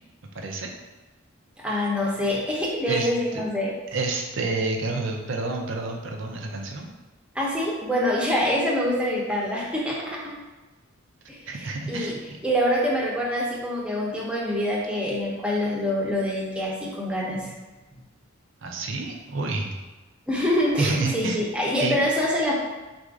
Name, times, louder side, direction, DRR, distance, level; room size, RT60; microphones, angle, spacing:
voice 1, 0.3-0.7 2.9-3.1 3.9-6.9 11.5-12.4 18.6-19.7 20.8-21.4 21.8-22.0, right 3 dB, 65° right, 2 dB, 0.6 m, -29 dB
voice 2, 1.6-3.7 7.3-10.3 11.3-12.1 12.4-17.5 20.3-22.5, left 1 dB, 5° right, -4 dB, 0.8 m, -25 dB
4.1 x 2.6 x 4.7 m, 1.2 s
head